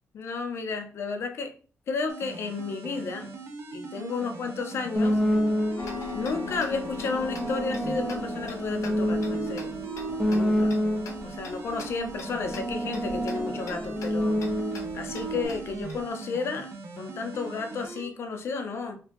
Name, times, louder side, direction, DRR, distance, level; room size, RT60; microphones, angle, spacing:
voice 1, 0.1-1.5 1.9-3.3 3.7-5.2 6.1-9.8 10.3-10.7 11.2-14.4 14.9-16.7 17.0-19.0, left 4 dB, 55° left, 6 dB, 0.5 m, -32 dB
sound 1, 2.1-18.1, right 3 dB, 60° right, 0.6 m, -41 dB
sound 2, 5.0-6.0 6.8-11.3 12.0-15.5, equal, 5° right, 0.6 m, -28 dB
Tick-tock, 5.8-16.0, left 4 dB, 80° left, 0.8 m, -41 dB
3.0 x 2.8 x 3.3 m, 0.39 s
wide cardioid pair, 175°, 5 cm